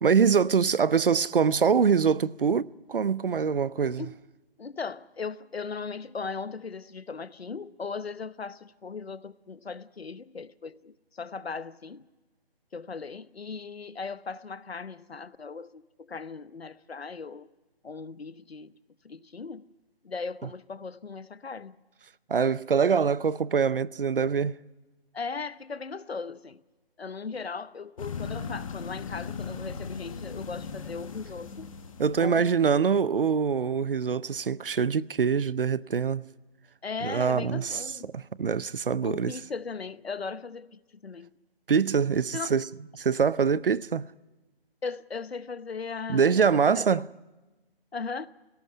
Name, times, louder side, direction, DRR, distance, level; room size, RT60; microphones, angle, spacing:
voice 1, 0.0-4.1 22.3-24.6 32.0-36.2 37.0-37.8 38.1-39.4 41.7-42.6 43.0-44.1 46.1-47.0, right 6 dB, 60° right, 0.7 m, -24 dB
voice 2, 4.6-12.0 12.7-17.5 17.8-18.7 19.0-19.7 20.0-21.8 25.1-26.6 27.0-31.7 32.2-32.9 36.8-38.1 39.0-41.3 42.3-42.5 44.8-47.0 47.9-48.3, left 5 dB, 80° left, 1.0 m, -38 dB
sound 1, 28.0-32.5, left 5 dB, 35° left, 1.5 m, -38 dB
18.0 x 17.5 x 9.6 m
figure-of-eight pair, 155°, 31 cm